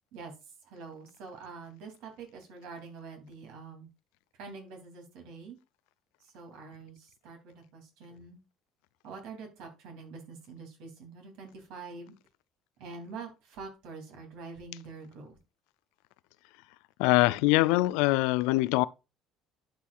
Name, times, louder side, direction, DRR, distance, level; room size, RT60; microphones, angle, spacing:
voice 1, 0.6-3.9 4.4-5.6 6.2-8.4 9.0-12.1 12.8-15.4, right 4 dB, 65° right, 3.0 m, -45 dB
voice 2, 17.0-18.8, left 20 dB, 70° left, 0.4 m, -23 dB
11.5 x 5.9 x 2.4 m
hypercardioid pair, 60°, 0 cm